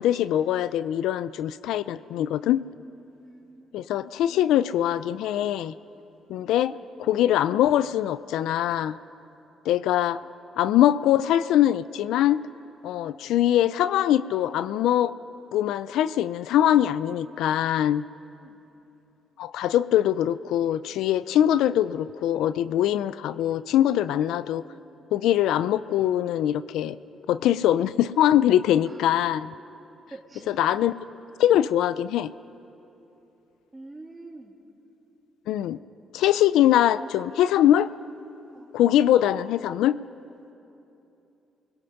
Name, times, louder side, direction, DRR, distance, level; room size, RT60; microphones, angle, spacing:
voice 1, 0.0-2.6 3.7-5.7 6.3-6.7 7.0-9.0 9.7-10.2 10.6-12.4 12.8-15.1 15.5-18.0 19.4-24.6 25.1-27.0 27.3-29.5 30.5-30.9 31.4-32.3 35.5-35.8 36.1-37.9 38.7-40.0, left 11 dB, 85° left, 15 dB, 0.4 m, -22 dB
voice 2, 3.2-3.8 6.7-6.9 18.4-18.6 28.8-29.0 30.1-30.6 33.7-34.5 38.5-38.8, right 2 dB, 20° right, -2 dB, 2.9 m, -46 dB
29.0 x 21.0 x 5.9 m, 2.9 s
cardioid pair, 90°, 0 cm